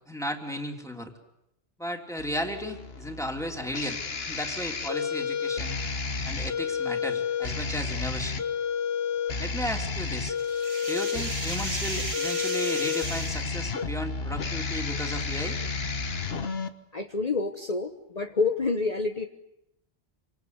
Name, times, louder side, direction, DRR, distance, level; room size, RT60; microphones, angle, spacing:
voice 1, 0.1-1.1 1.8-4.0 4.3-5.8 6.2-8.4 9.4-10.4 10.8-15.6, equal, 5° left, 2 dB, 3.3 m, -34 dB
sound 1, 2.2-16.7, left 5 dB, 80° left, 1.6 m, -31 dB
sound 2, 9.7-13.5, right 2 dB, 85° right, 3.5 m, -35 dB
voice 2, 16.9-19.3, left 4 dB, 40° left, 4 dB, 1.3 m, -28 dB
27.5 x 26.5 x 8.1 m, 0.83 s
omnidirectional pair, 1.0 m